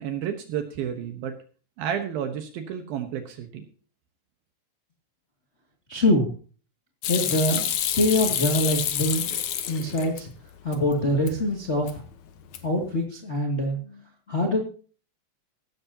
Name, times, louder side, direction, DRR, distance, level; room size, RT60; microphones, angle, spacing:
voice 1, 0.0-1.3 1.8-3.7, right 9 dB, 75° right, 6 dB, 3.0 m, -31 dB
voice 2, 5.9-6.3 7.1-7.7 8.0-9.3 9.7-10.3 10.6-12.0 12.6-14.0 14.3-14.6, left 1 dB, 20° left, 0 dB, 1.9 m, -24 dB
Hands / Sink (filling or washing), 7.0-10.2 10.6-11.3 11.7-12.1 12.4-12.9, left 10 dB, 65° left, 2.2 m, -28 dB
16.0 x 14.0 x 2.9 m, 0.38 s
omnidirectional pair, 4.4 m